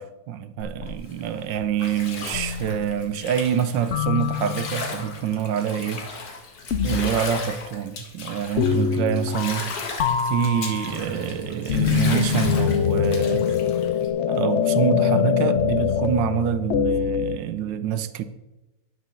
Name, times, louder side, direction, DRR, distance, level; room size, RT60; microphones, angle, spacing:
voice 1, 0.0-6.1 6.8-13.5 14.3-18.2, right 9 dB, 75° right, 1.3 m, -26 dB
Bathtub (filling or washing), 0.6-14.1, left 4 dB, 50° left, 1.8 m, -36 dB
sound 1, 2.3-3.1 3.9-5.0 6.7-7.3 8.6-9.7 10.0-17.4, left 7 dB, 80° left, 0.6 m, -24 dB
10.0 x 6.1 x 6.9 m
omnidirectional pair, 2.1 m